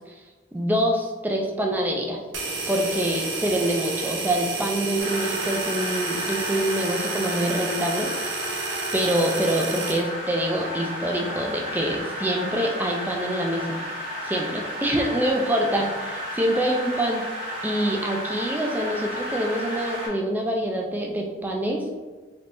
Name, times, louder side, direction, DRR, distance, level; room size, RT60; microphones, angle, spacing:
voice 1, 0.5-2.2 2.7-8.5 8.9-13.8 14.2-17.2 17.6-21.9, right 1 dB, 10° right, 1 dB, 0.3 m, -25 dB
sound 1, 2.3-10.0, right 4 dB, 70° right, 0.7 m, -30 dB
sound 2, 5.0-20.1, equal, 40° right, 1.3 m, -33 dB
3.4 x 3.2 x 2.6 m, 1.3 s
head